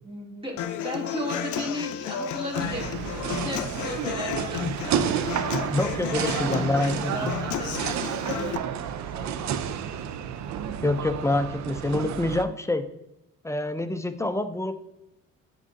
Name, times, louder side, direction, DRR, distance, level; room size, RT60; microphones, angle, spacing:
voice 1, 0.0-5.3 6.0-8.6 9.1-9.6, equal, 20° right, -3 dB, 2.1 m, -36 dB
Human voice / Acoustic guitar, 0.6-8.6, left 9 dB, 75° left, 0.5 m, -33 dB
sound 1, 2.5-12.4, right 9 dB, 65° right, 0.5 m, -31 dB
voice 2, 5.7-7.3 10.8-12.8 13.4-14.8, left 2 dB, 10° left, 10 dB, 0.4 m, -26 dB
9.9 x 3.8 x 2.6 m, 0.86 s
cardioid pair, 90°, 30 cm